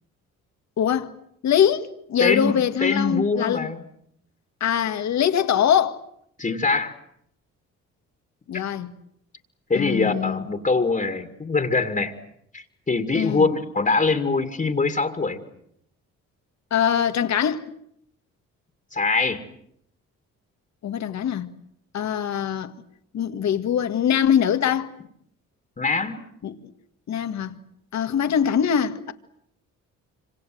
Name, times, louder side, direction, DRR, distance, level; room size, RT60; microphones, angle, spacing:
voice 1, 0.8-1.1 1.4-3.7 4.6-6.0 8.5-8.9 9.7-10.5 13.1-13.5 16.7-17.6 20.8-21.5 21.9-22.7 23.1-24.9 26.4-26.5 27.1-27.6 27.9-29.1, left 9 dB, 65° left, 2.0 m, -23 dB
voice 2, 2.2-2.5 2.8-3.8 6.4-6.9 9.7-12.1 12.5-15.4 18.9-19.4 25.8-26.2, left 3 dB, 25° left, 2.4 m, -23 dB
26.5 x 25.5 x 7.8 m
cardioid pair, 90°, 30 cm